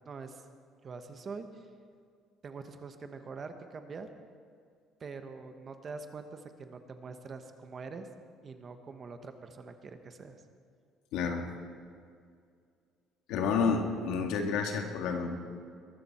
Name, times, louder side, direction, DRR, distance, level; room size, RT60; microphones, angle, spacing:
voice 1, 0.0-0.4 0.8-1.6 2.4-4.1 5.0-8.1 8.4-10.4, right 4 dB, 30° right, 7 dB, 1.2 m, -44 dB
voice 2, 11.1-11.4 13.3-15.3, left 5 dB, 85° left, 3 dB, 2.1 m, -29 dB
22.0 x 13.5 x 4.4 m, 2.2 s
cardioid pair, 140°, 0 cm